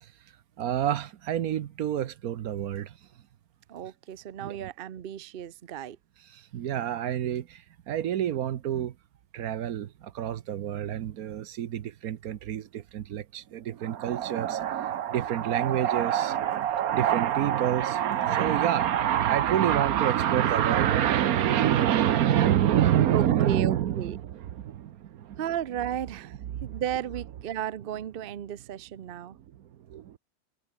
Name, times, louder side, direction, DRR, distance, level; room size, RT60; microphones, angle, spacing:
voice 1, 0.6-3.0 4.4-4.7 6.2-8.9 9.3-25.4 26.4-26.8 29.5-30.2, right 11 dB, 60° right, 1.1 m, -27 dB
voice 2, 3.7-6.0 23.1-24.2 25.4-26.4 26.6-29.4, right 10 dB, 80° right, 0.5 m, -34 dB
omnidirectional pair, 2.0 m